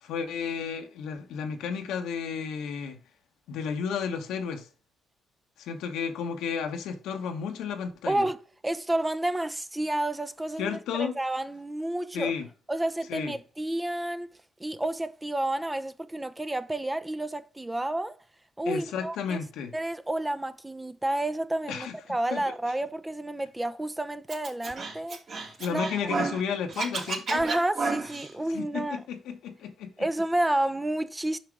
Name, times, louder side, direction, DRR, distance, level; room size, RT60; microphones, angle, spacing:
voice 1, 0.0-3.0 3.5-4.7 5.6-8.2 10.6-11.2 12.1-12.5 13.1-13.3 18.7-19.7 21.7-21.9 22.3-22.5 25.6-27.4 28.5-29.9, left 6 dB, 85° left, 1.4 m, -32 dB
voice 2, 8.1-8.4 8.6-12.3 12.7-14.3 14.6-18.1 18.6-19.4 19.7-25.2 25.7-26.1 27.3-29.0 30.0-31.4, right 1 dB, 10° right, 0.7 m, -30 dB
Scratching (performance technique), 24.3-26.4 26.7-28.3, right 4 dB, 55° right, 2.8 m, -31 dB
5.8 x 5.7 x 4.8 m
cardioid pair, 90°, 0 cm